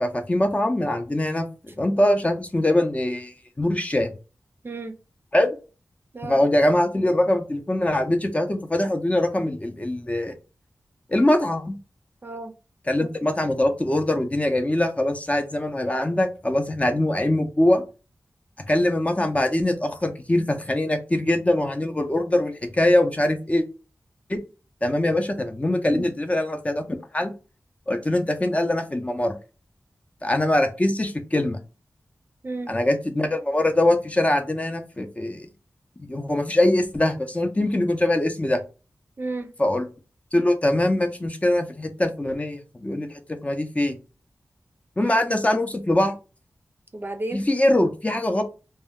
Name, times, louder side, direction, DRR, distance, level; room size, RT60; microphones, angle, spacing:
voice 1, 0.0-4.1 5.3-5.6 6.2-10.3 11.1-11.7 12.9-17.8 18.7-23.6 24.3-24.4 24.8-26.8 27.1-27.3 27.9-29.3 30.2-31.6 32.7-35.5 36.1-38.6 39.6-39.8 40.3-43.1 43.4-44.0 45.0-46.1 47.3-48.4, left 1 dB, 25° left, 0.5 m, -22 dB
voice 2, 12.2-12.5 25.9-26.1 32.4-32.7 39.2-39.5 45.0-45.2 46.9-47.4, right 2 dB, 40° right, 0.5 m, -32 dB
2.1 x 2.1 x 3.5 m
wide cardioid pair, 60°, 5 cm